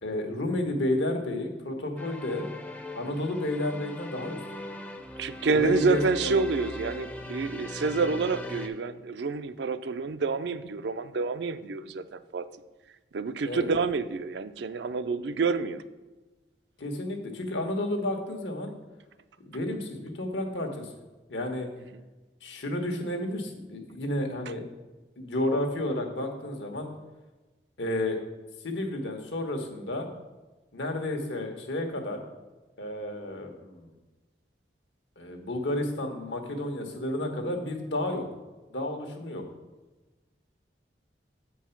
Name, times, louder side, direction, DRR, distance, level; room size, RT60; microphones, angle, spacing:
voice 1, 0.0-2.5 3.0-4.4 5.5-6.3 13.4-13.7 16.8-18.7 19.5-20.9 21.3-21.7 22.4-24.6 25.2-26.9 27.8-28.2 28.6-30.1 30.7-32.2 32.8-33.9 35.2-38.3 38.7-39.4, left 1 dB, 85° left, 4 dB, 1.3 m, -31 dB
sound 1, 2.0-8.7, left 1 dB, 10° left, 0.4 m, -39 dB
voice 2, 5.2-12.5 13.1-15.8, right 4 dB, 75° right, 12 dB, 0.4 m, -28 dB
7.8 x 4.6 x 5.8 m, 1.2 s
head